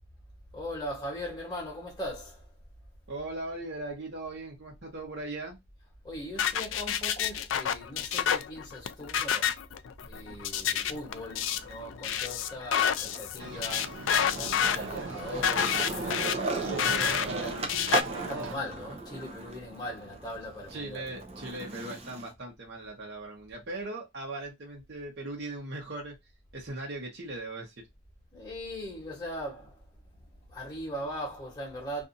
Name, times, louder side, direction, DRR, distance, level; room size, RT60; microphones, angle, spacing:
voice 1, 0.5-2.6 6.0-9.7 10.0-18.0 18.3-21.0 28.3-32.1, equal, 20° left, 1.2 m, -40 dB
voice 2, 3.1-5.6 16.8-17.0 20.7-26.2 26.5-27.7, right 2 dB, 60° right, 1.0 m, -39 dB
sound 1, 6.4-18.0, left 8 dB, 80° left, 0.3 m, -30 dB
Skateboard, 10.1-11.7 12.1-22.3, right 2 dB, 30° right, 0.5 m, -38 dB
sound 2, 13.4-18.6, right 4 dB, 85° right, 0.5 m, -38 dB
2.6 x 2.4 x 2.6 m
head